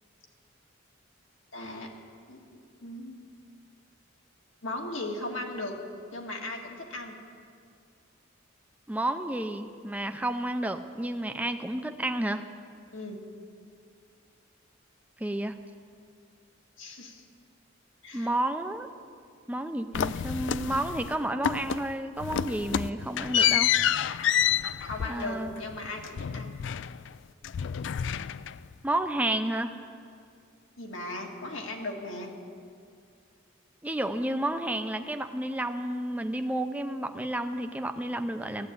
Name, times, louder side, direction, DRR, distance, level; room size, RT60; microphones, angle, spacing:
voice 1, 1.5-1.9 2.3-3.2 4.6-5.8 6.1-7.2 12.9-13.2 16.8-17.2 18.0-18.3 24.8-26.5 30.8-32.3, left 2 dB, 75° left, 1 dB, 1.8 m, -37 dB
voice 2, 8.9-12.4 15.2-15.5 18.1-18.9 19.5-23.7 25.0-25.5 28.8-29.7 33.8-38.7, right 1 dB, 5° right, 7 dB, 0.5 m, -31 dB
sound 1, 19.9-21.1 21.4-21.9 22.2-27.2 27.4-28.7, left 9 dB, 60° left, 0.3 m, -28 dB
14.5 x 8.2 x 9.7 m, 2.3 s
head